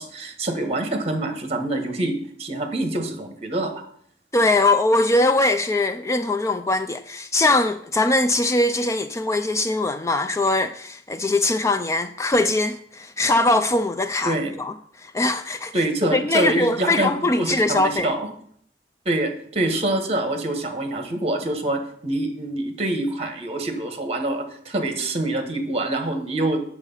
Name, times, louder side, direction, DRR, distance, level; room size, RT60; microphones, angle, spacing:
voice 1, 0.0-2.1 2.4-3.7 14.2-14.5 15.7-18.3 19.0-26.6, right 1 dB, 35° right, 1.6 m, -25 dB
voice 2, 4.3-14.7 15.0-15.7 16.1-18.1, left 2 dB, 15° left, 0.3 m, -21 dB
8.1 x 7.0 x 5.6 m
head